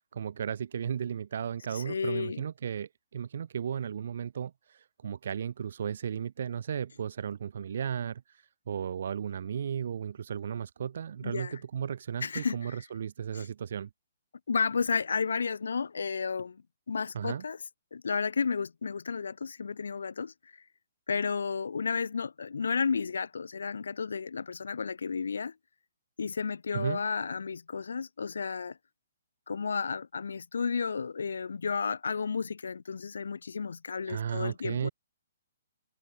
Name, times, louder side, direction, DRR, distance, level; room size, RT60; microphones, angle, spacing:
voice 1, 0.1-13.9 17.1-17.4 26.7-27.0 34.1-34.9, right 8 dB, 55° right, 3.3 m, -35 dB
voice 2, 1.7-2.4 11.2-11.6 12.2-12.8 13.3-13.5 14.5-16.6 16.9-17.6 17.9-20.3 21.1-25.5 26.2-28.8 29.5-34.9, left 5 dB, 65° left, 1.9 m, -32 dB
figure-of-eight pair, 125°, 0 cm